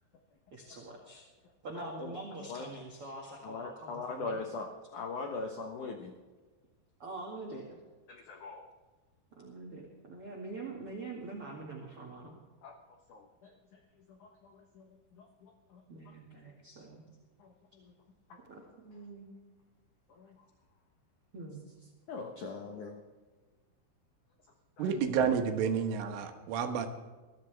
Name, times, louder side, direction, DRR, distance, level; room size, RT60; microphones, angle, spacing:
voice 1, 0.5-1.2 1.6-4.4 7.0-7.8 9.3-12.3 15.9-17.0 18.5-19.3 21.3-21.6, right 2 dB, 40° right, -1 dB, 2.2 m, -44 dB
voice 2, 1.8-2.1 2.5-2.7 3.4-6.1 8.1-8.6 12.6-12.7 13.1-13.8 14.1-14.9 15.1-16.1 17.4-17.9 20.1-20.4 22.1-23.0 24.8-24.9, left 4 dB, 80° left, 3 dB, 1.7 m, -42 dB
voice 3, 24.8-26.9, right 7 dB, 90° right, 5 dB, 3.9 m, -30 dB
23.0 x 14.0 x 3.5 m, 1.3 s
omnidirectional pair, 5.4 m